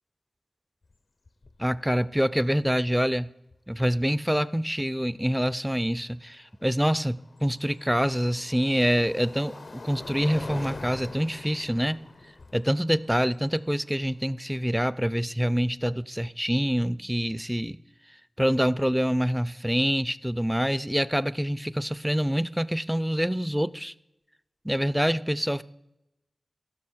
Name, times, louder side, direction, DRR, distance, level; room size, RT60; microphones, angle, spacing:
sound 1, 0.8-0.9 1.3-1.7 3.5-3.6 6.6-14.7, left 3 dB, 65° left, 0.5 m, -44 dB
voice 1, 1.6-3.3 3.7-12.0 12.5-17.8 18.4-23.9 24.6-25.6, equal, 5° right, 0.4 m, -26 dB
15.0 x 6.2 x 4.3 m
cardioid pair, 45°, 0 cm